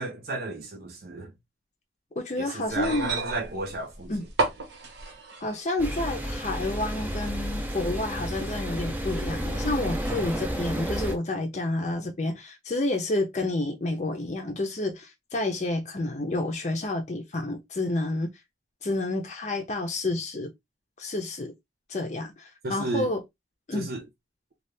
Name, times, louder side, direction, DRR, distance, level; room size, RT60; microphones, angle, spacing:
voice 1, 0.0-1.3 2.4-4.1 22.6-23.1 23.7-24.1, right 2 dB, 55° right, 0.6 m, -33 dB
voice 2, 2.2-3.1 4.1-4.2 5.4-18.3 18.8-20.5 21.0-21.5 21.9-23.2 23.7-23.9, left 2 dB, 40° left, 0.6 m, -29 dB
sound 1, 2.7-5.7 6.7-6.8, right 3 dB, 75° right, 1.1 m, -31 dB
sound 2, 5.8-11.1, equal, 10° right, 0.5 m, -31 dB
2.7 x 2.4 x 3.2 m
head